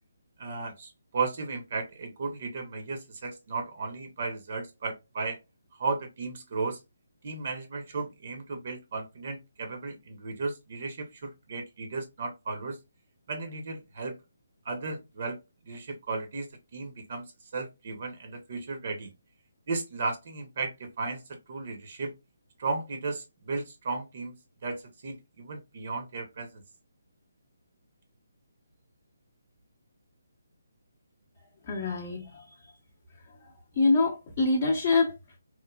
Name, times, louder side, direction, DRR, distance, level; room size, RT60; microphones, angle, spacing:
voice 1, 0.4-5.4 5.8-6.8 7.2-12.8 13.3-14.2 14.6-17.3 17.5-19.1 19.7-22.1 22.6-24.4 24.6-26.6, right 3 dB, 45° right, 0.6 m, -35 dB
voice 2, 31.7-32.4 33.8-35.1, left 3 dB, 35° left, 0.6 m, -25 dB
3.0 x 2.0 x 2.2 m
figure-of-eight pair, 145°, 0 cm